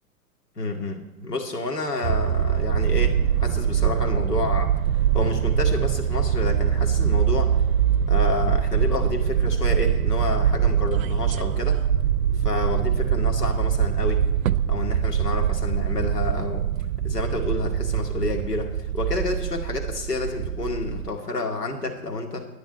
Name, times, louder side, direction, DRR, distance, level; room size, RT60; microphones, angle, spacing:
voice 1, 0.6-4.7 5.1-7.5 8.1-11.8 12.4-14.2 14.7-16.7 17.0-22.5, left 3 dB, 80° left, 2 dB, 2.4 m, -29 dB
sound 1, 2.0-21.1, right 9 dB, 60° right, 0.7 m, -23 dB
18.5 x 10.5 x 4.3 m, 0.94 s
figure-of-eight pair, 100°, 46 cm